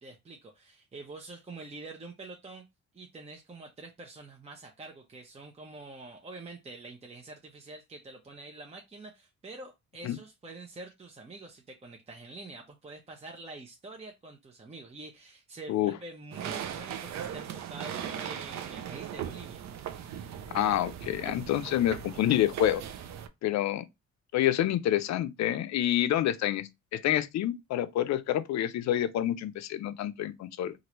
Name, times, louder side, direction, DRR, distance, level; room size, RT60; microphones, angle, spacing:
voice 1, 0.0-2.6 2.9-19.6, right 3 dB, 20° right, 0.7 m, -46 dB
sound 1, 16.3-23.3, right 9 dB, 65° right, 0.5 m, -39 dB
voice 2, 20.5-22.8 23.4-23.8 24.3-30.7, left 12 dB, 65° left, 0.5 m, -28 dB
3.0 x 2.5 x 2.9 m
cardioid pair, 90°, 30 cm